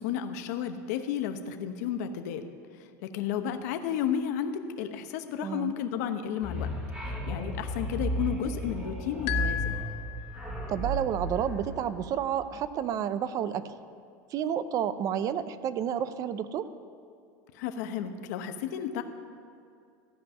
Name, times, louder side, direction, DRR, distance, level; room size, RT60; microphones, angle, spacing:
voice 1, 0.0-2.4 2.8-6.7 7.0-9.8 17.5-19.0, left 8 dB, 75° left, 8 dB, 0.9 m, -32 dB
voice 2, 5.4-5.7 10.7-13.7 14.3-16.7, right 9 dB, 40° right, 14 dB, 0.6 m, -30 dB
sound 1, 6.4-12.6, equal, 10° right, 1.5 m, -34 dB
sound 2, 9.3-10.8, left 11 dB, 55° left, 0.6 m, -35 dB
15.0 x 5.4 x 9.1 m, 2.4 s
supercardioid pair, 135°, 9 cm